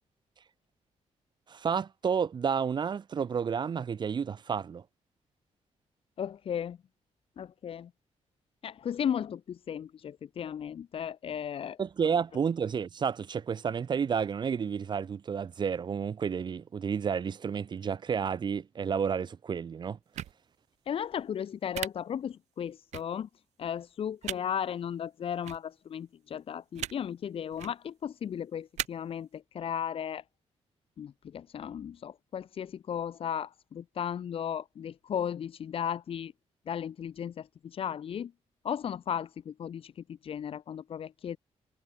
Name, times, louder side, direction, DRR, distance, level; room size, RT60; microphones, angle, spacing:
voice 1, 1.5-4.8 11.8-20.0, right 6 dB, 40° right, 2.8 m, -31 dB
voice 2, 6.2-6.8 7.4-7.9 8.6-11.8 20.9-23.3 23.6-30.2 31.0-36.3 36.7-38.3 38.6-41.4, left 8 dB, 55° left, 3.2 m, -35 dB
sound 1, 20.1-20.3 21.7-21.9 22.9-23.0 24.2-24.4 25.4-25.6 26.8-26.9 27.5-27.7 28.8-28.9, right 12 dB, 90° right, 1.3 m, -35 dB
wide cardioid pair, 155°, 11 cm